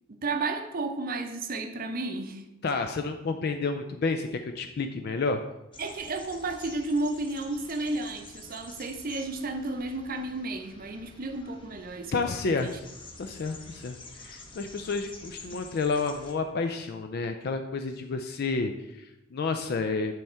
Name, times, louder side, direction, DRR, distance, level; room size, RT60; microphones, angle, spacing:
voice 1, 0.1-2.5 5.8-12.8, right 2 dB, 45° right, 6 dB, 0.7 m, -32 dB
voice 2, 2.6-5.4 12.1-12.7 13.2-20.1, left 4 dB, 50° left, 6 dB, 0.4 m, -30 dB
sound 1, 5.7-16.3, left 3 dB, 25° left, 0.7 m, -48 dB
9.1 x 3.5 x 4.4 m, 0.95 s
head